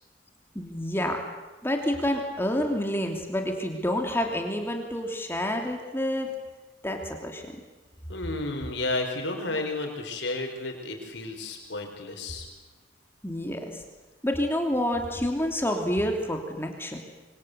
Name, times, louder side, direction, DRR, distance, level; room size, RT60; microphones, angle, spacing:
voice 1, 0.5-1.2 1.6-6.3 6.8-7.5 13.2-13.8 14.2-17.0, left 1 dB, 15° left, 3 dB, 3.0 m, -28 dB
voice 2, 8.1-12.5, left 2 dB, 70° left, 3 dB, 5.1 m, -32 dB
27.5 x 24.5 x 8.2 m, 1.2 s
head